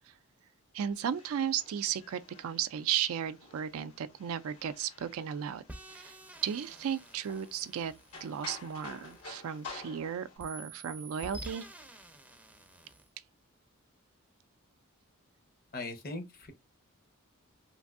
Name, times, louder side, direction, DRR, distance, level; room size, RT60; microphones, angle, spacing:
voice 1, 0.7-5.6 5.9-6.2 6.4-7.9 8.2-11.6, right 9 dB, 70° right, 0.3 m, -35 dB
sound 1, 0.9-10.4, left 4 dB, 80° left, 1.6 m, -51 dB
sound 2, 5.7-10.0 10.4-13.1, right 1 dB, 5° right, 0.5 m, -50 dB
voice 2, 15.7-16.5, left 2 dB, 45° left, 0.7 m, -39 dB
3.2 x 2.6 x 2.4 m
head